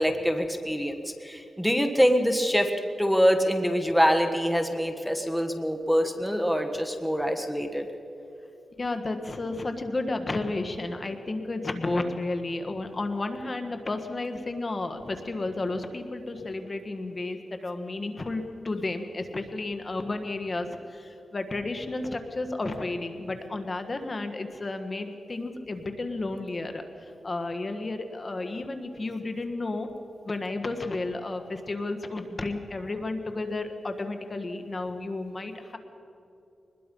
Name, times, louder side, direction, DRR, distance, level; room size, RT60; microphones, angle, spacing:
voice 1, 0.0-7.9, equal, ahead, 5 dB, 1.4 m, -25 dB
voice 2, 8.8-29.9 30.2-35.8, left 2 dB, 35° left, 7 dB, 1.4 m, -32 dB
23.5 x 20.5 x 5.4 m, 2.8 s
wide cardioid pair, 95°, 0 cm